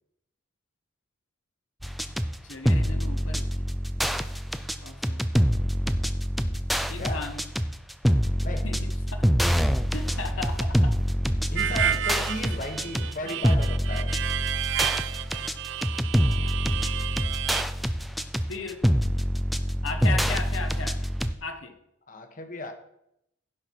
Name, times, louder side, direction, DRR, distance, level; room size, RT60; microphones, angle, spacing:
sound 1, 1.8-21.3, equal, ahead, 0.4 m, -26 dB
voice 1, 2.4-3.7 4.8-5.2 6.9-7.4 8.6-9.2 9.9-10.9 11.9-12.0 18.5-18.8 19.8-21.0 21.4-21.7, left 4 dB, 80° left, 1.3 m, -36 dB
voice 2, 11.5-14.2 20.0-20.2 22.1-22.7, left 1 dB, 40° left, 1.3 m, -36 dB
Harmonica, 11.6-17.6, right 11 dB, 60° right, 0.4 m, -31 dB
16.0 x 5.8 x 4.7 m
head